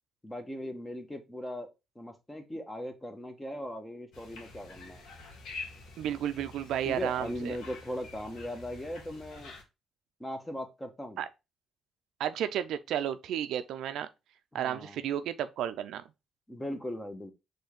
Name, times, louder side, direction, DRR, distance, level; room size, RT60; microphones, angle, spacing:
voice 1, 0.2-1.7 1.9-5.0 6.8-9.5 10.2-11.2 14.5-15.0 16.5-17.3, left 1 dB, 10° left, 1.1 m, -39 dB
sound 1, 4.1-9.6, left 3 dB, 85° left, 1.6 m, -47 dB
voice 2, 6.0-7.6 11.2-11.3 12.2-14.1 14.5-16.0, right 10 dB, 80° right, 0.4 m, -32 dB
4.4 x 3.3 x 3.5 m
cardioid pair, 90°, 0 cm